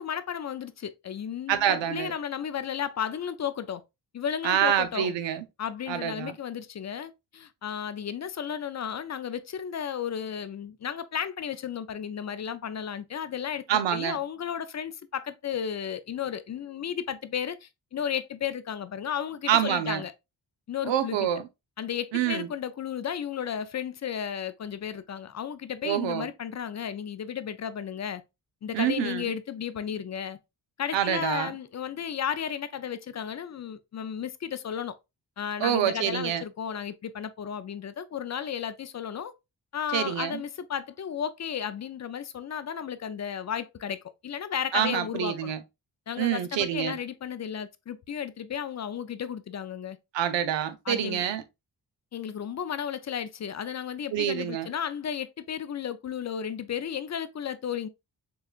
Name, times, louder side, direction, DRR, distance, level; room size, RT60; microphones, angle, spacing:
voice 1, 0.0-3.8 4.1-5.1 5.6-20.1 20.7-21.3 21.8-28.2 28.6-30.4 30.8-35.0 35.4-39.3 39.7-45.5 46.1-50.0 50.9-51.2 52.1-57.9, left 8 dB, 40° left, 0.4 m, -34 dB
voice 2, 1.5-2.1 4.4-5.4 5.9-6.3 13.7-14.2 19.5-20.0 20.8-21.4 22.1-22.5 25.8-26.3 28.7-29.3 30.9-31.5 35.6-36.4 39.9-40.4 44.7-45.6 46.2-47.0 50.1-51.4 54.1-54.7, right 10 dB, 85° right, 0.7 m, -26 dB
6.6 x 2.3 x 2.4 m
cardioid pair, 70°, 43 cm